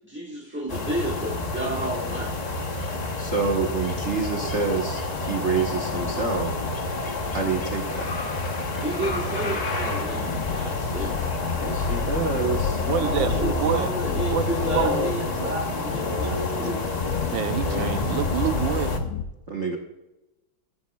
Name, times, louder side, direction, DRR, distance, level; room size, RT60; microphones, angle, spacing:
voice 1, 0.0-2.4 8.8-11.2 13.0-16.8, right 1 dB, 5° right, -3 dB, 1.0 m, -31 dB
sound 1, 0.7-19.0, left 2 dB, 50° left, 0.5 m, -28 dB
voice 2, 3.2-6.6 7.3-8.1 11.6-12.8 19.5-19.8, right 4 dB, 45° right, 1 dB, 1.0 m, -27 dB
sound 2, 10.1-19.2, left 8 dB, 70° left, 1.0 m, -32 dB
voice 3, 12.9-13.9 14.3-15.6 17.3-18.9, right 10 dB, 75° right, 10 dB, 1.4 m, -28 dB
15.5 x 9.5 x 2.3 m, 0.96 s
omnidirectional pair, 2.2 m